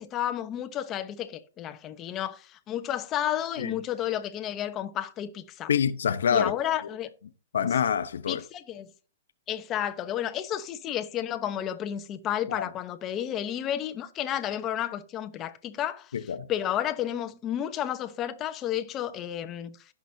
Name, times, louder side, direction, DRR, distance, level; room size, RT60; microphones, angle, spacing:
voice 1, 0.0-5.7 6.3-7.1 8.3-8.9 9.5-19.8, left 11 dB, 25° left, 0.9 m, -32 dB
voice 2, 5.7-6.5 7.5-8.4 12.5-12.6 16.1-16.5, left 7 dB, 80° left, 0.8 m, -26 dB
16.5 x 6.1 x 2.8 m
hypercardioid pair, 145°, 0 cm